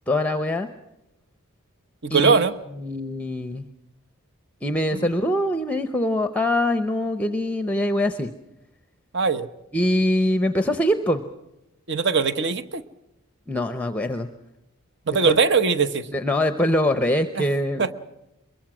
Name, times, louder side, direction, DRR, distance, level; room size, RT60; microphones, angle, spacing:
voice 1, 0.1-0.7 2.1-2.5 2.8-3.7 4.6-8.3 9.7-11.2 13.5-14.3 15.3-15.4 16.1-17.9, left 1 dB, 5° left, 9 dB, 0.7 m, -23 dB
voice 2, 2.0-2.5 4.9-5.1 9.1-9.5 11.9-12.8 15.1-16.1 17.3-17.5 17.8-17.9, right 5 dB, 50° right, 12 dB, 1.0 m, -21 dB
23.0 x 22.5 x 6.1 m, 0.90 s
head